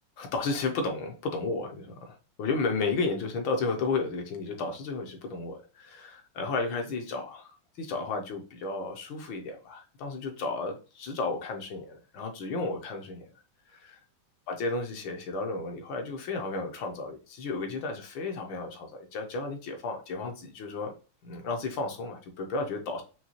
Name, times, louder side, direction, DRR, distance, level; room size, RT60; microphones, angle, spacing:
voice 1, 0.2-13.2 13.7-14.0 14.5-20.9 21.2-23.0, left 3 dB, 70° left, 3 dB, 1.4 m, -33 dB
5.5 x 2.7 x 2.9 m, 0.34 s
omnidirectional pair, 2.4 m